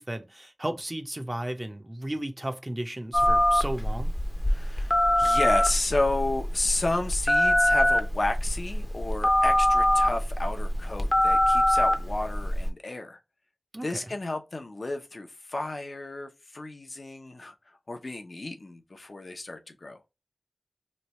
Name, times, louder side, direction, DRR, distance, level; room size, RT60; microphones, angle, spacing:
voice 1, 0.0-4.1 13.7-14.1, right 1 dB, 25° right, 0.5 m, -34 dB
Telephone, 3.1-12.7, left 1 dB, 25° left, 0.6 m, -24 dB
voice 2, 4.5-13.2 13.8-17.5 17.9-20.0, left 2 dB, 65° left, 0.7 m, -32 dB
3.1 x 2.3 x 4.0 m
wide cardioid pair, 70°, 0 cm